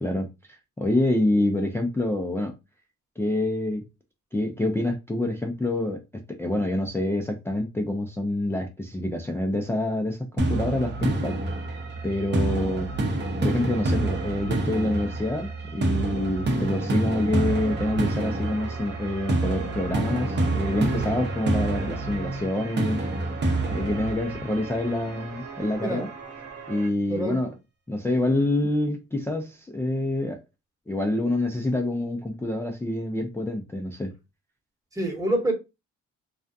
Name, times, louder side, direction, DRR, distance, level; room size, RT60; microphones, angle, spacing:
voice 1, 0.0-2.5 3.2-3.8 4.3-6.0 6.4-11.4 12.0-12.9 13.4-23.0 23.7-26.1 26.7-27.5 27.9-30.4 30.9-34.1, left 1 dB, 10° left, 0.4 m, -27 dB
sound 1, 10.4-25.3, right 2 dB, 35° right, 0.7 m, -28 dB
sound 2, 17.4-26.9, right 5 dB, 65° right, 1.0 m, -40 dB
voice 2, 27.1-27.4 34.9-35.5, right 1 dB, 10° right, 1.0 m, -26 dB
2.4 x 2.2 x 2.5 m
cardioid pair, 90°, 30 cm